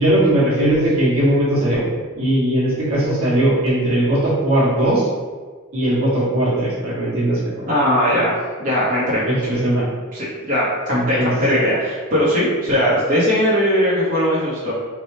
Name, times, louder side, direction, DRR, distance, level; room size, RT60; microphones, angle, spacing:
voice 1, 0.0-1.8 2.1-5.1 5.7-7.4 9.2-9.8 10.9-11.3 11.6-11.7 12.7-12.8, right 1 dB, 75° right, -8 dB, 1.4 m, -18 dB
voice 2, 7.7-8.3 8.6-9.2 10.1-14.7, equal, 40° right, -8 dB, 0.9 m, -19 dB
3.3 x 2.2 x 4.1 m, 1.5 s
head